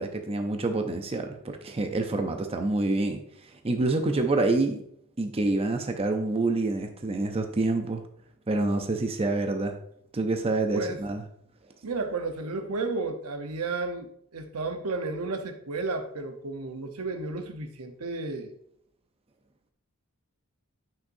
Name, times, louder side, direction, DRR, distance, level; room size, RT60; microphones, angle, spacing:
voice 1, 0.0-4.8 5.2-8.0 8.5-9.8 10.1-11.2, right 2 dB, 25° right, 5 dB, 0.6 m, -27 dB
voice 2, 11.8-18.5, right 3 dB, 80° right, 6 dB, 0.9 m, -32 dB
9.0 x 6.0 x 2.6 m, 0.68 s
head